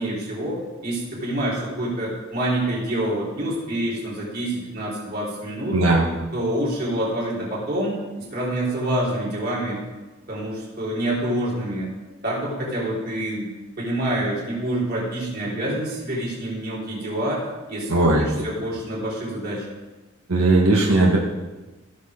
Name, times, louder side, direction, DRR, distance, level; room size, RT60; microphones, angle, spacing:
voice 1, 0.0-5.8 6.3-7.9 8.3-9.8 10.3-11.9 12.2-13.5 13.8-17.4 17.7-18.1 18.4-19.6, right 1 dB, 45° right, -6 dB, 4.1 m, -27 dB
voice 2, 5.7-6.1 17.9-18.5 20.3-21.2, right 2 dB, 75° right, -3 dB, 1.4 m, -18 dB
16.0 x 6.7 x 3.7 m, 1.2 s
head